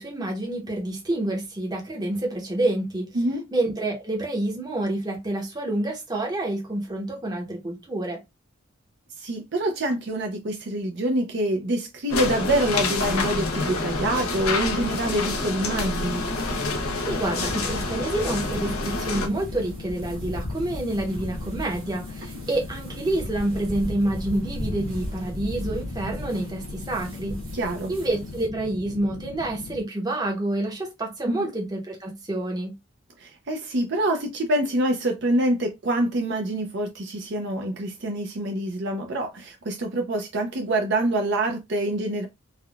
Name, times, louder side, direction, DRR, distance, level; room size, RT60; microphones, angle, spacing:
voice 1, 0.0-3.1 3.5-8.2 17.1-27.4 27.9-32.7, right 1 dB, 20° right, 0.8 m, -28 dB
voice 2, 3.1-3.5 9.2-16.2 27.5-27.9 31.2-31.5 33.2-42.3, right 1 dB, 55° right, 0.5 m, -26 dB
sound 1, 12.1-19.3, left 3 dB, 90° left, 0.7 m, -27 dB
sound 2, 15.7-29.8, left 4 dB, 65° left, 0.3 m, -40 dB
sound 3, 16.4-28.5, equal, 80° right, 1.3 m, -37 dB
3.4 x 2.2 x 2.3 m
head